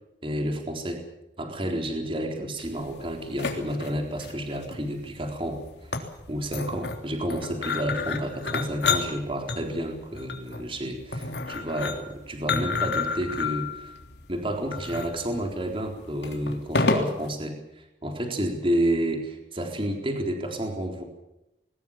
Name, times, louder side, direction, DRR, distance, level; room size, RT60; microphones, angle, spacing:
voice 1, 0.2-1.0 1.4-5.6 6.3-13.9 14.3-21.0, right 1 dB, 30° right, 3 dB, 4.0 m, -30 dB
sound 1, 2.6-17.3, left 4 dB, 70° left, 3.4 m, -31 dB
21.5 x 20.0 x 7.3 m, 0.92 s
head